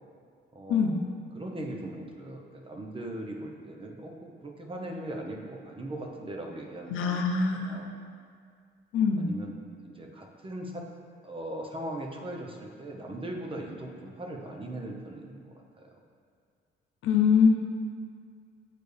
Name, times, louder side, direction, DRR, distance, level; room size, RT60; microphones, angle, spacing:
voice 1, 0.5-0.9 1.3-8.0 9.2-9.5 9.8-10.8 11.2-15.9, right 1 dB, 25° right, 1 dB, 0.9 m, -39 dB
voice 2, 6.9-7.8 8.9-9.2 17.0-17.5, left 6 dB, 85° left, 2 dB, 0.7 m, -23 dB
8.2 x 4.3 x 3.4 m, 2.1 s
cardioid pair, 90°, 20 cm